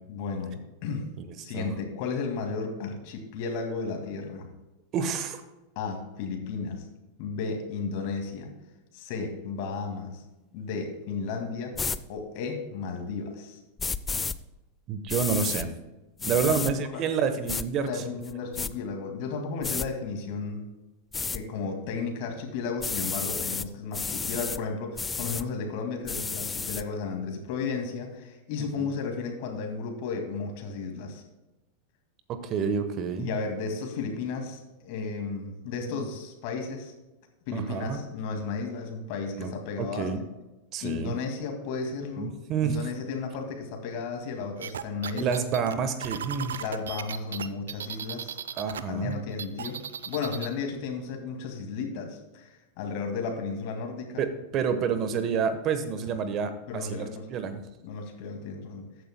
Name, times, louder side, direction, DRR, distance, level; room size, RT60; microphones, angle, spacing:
voice 1, 0.1-1.1 1.4-4.5 5.8-6.9 7.2-8.5 8.9-10.2 10.5-11.8 12.1-13.6 16.4-17.0 17.8-20.6 21.3-31.2 33.2-36.9 37.5-40.1 40.8-42.3 42.6-45.4 46.6-48.4 48.8-54.2 56.0-56.1 56.7-57.3 57.8-58.9, left 4 dB, 55° left, 3 dB, 2.1 m, -34 dB
voice 2, 4.9-5.4 14.9-15.7 16.2-18.0 28.6-28.9 32.3-33.4 35.8-36.1 37.5-38.0 39.3-39.5 39.8-40.2 40.7-41.2 42.2-42.8 45.2-46.6 48.6-49.2 54.2-57.6, right 6 dB, 40° right, 10 dB, 1.1 m, -29 dB
sound 1, 11.7-12.0 13.8-14.4 15.1-15.7 16.2-16.7 17.5-17.6 18.2-18.7 19.6-19.9 21.1-21.4 22.8-23.7 23.9-24.6 25.0-25.4 26.1-26.8, left 4 dB, 15° left, 0.4 m, -31 dB
sound 2, 44.6-48.8 49.1-50.5, right 8 dB, 80° right, 0.5 m, -36 dB
14.0 x 9.2 x 2.2 m, 1.0 s
hypercardioid pair, 95°, 0 cm